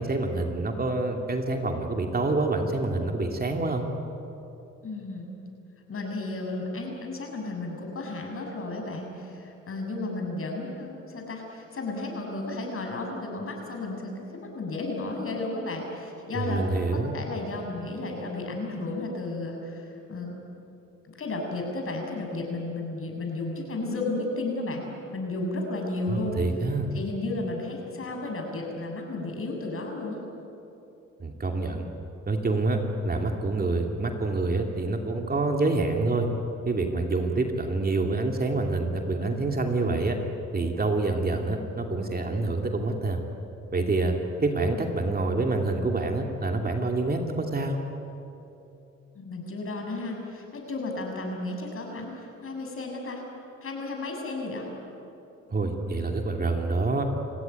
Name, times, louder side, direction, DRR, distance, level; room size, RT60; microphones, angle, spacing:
voice 1, 0.0-3.9 16.3-17.1 26.1-26.9 31.2-31.9 32.3-32.8 33.0-36.3 36.7-40.2 40.5-43.2 43.7-44.1 44.4-47.8 55.5-57.1, right 3 dB, 30° right, 3 dB, 2.7 m, -27 dB
voice 2, 4.8-5.3 5.9-20.4 21.2-24.9 25.1-26.4 26.9-30.2 36.9-37.0 49.1-53.2 53.6-54.7, left 2 dB, 45° left, 2 dB, 6.9 m, -33 dB
29.5 x 16.5 x 9.5 m, 2.9 s
cardioid pair, 90°, 30 cm